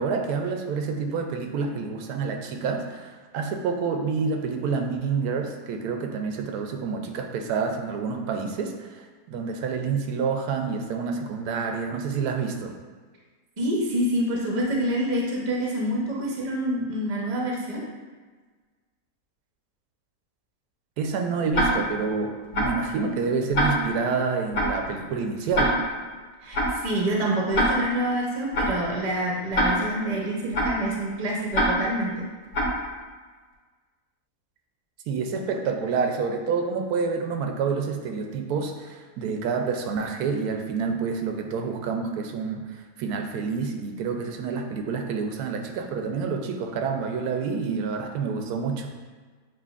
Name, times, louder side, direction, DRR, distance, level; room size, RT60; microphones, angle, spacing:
voice 1, 0.0-12.7 21.0-25.8 35.1-48.9, right 5 dB, 85° right, 4 dB, 1.1 m, -28 dB
voice 2, 13.6-17.8 26.4-32.3, right 1 dB, 35° right, -3 dB, 0.7 m, -27 dB
Tick-tock, 21.5-22.0 22.5-22.9 23.5-24.0 24.5-24.9 25.5-26.0 26.5-26.9 27.5-28.0 28.5-28.9 29.5-30.0 30.5-30.9 31.5-32.0 32.5-32.9, equal, 80° left, 1.6 m, -24 dB
7.5 x 2.8 x 2.4 m, 1.4 s
omnidirectional pair, 1.6 m